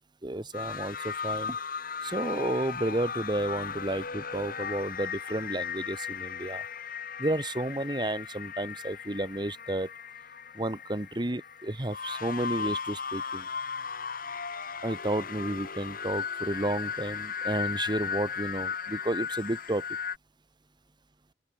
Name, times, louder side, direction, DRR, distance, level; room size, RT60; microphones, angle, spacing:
voice 1, 0.2-1.6 2.0-6.6 7.2-9.9 10.5-13.5 14.8-19.8, right 1 dB, 25° right, 1.5 m, -32 dB
sound 1, 0.5-20.2, left 6 dB, 55° left, 3.5 m, -36 dB
open air
head